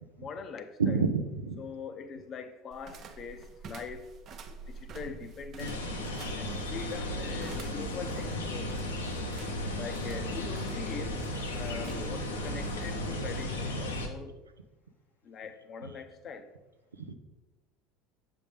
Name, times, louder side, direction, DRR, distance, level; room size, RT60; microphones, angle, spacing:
voice 1, 0.2-1.0 1.6-4.0 4.7-5.8 6.3-8.8 9.8-11.2 11.5-14.3 15.3-16.5, left 5 dB, 40° left, 9 dB, 0.6 m, -42 dB
voice 2, 0.8-1.6 5.6-5.7 9.6-9.8 15.8-15.9 17.1-17.2, right 4 dB, 90° right, 8 dB, 0.5 m, -29 dB
sound 1, 2.7-14.0, right 4 dB, 45° right, 0.7 m, -48 dB
sound 2, 5.6-14.1, left 1 dB, 85° left, 0.8 m, -35 dB
7.4 x 5.2 x 3.5 m, 1.1 s
hypercardioid pair, 75°, 0 cm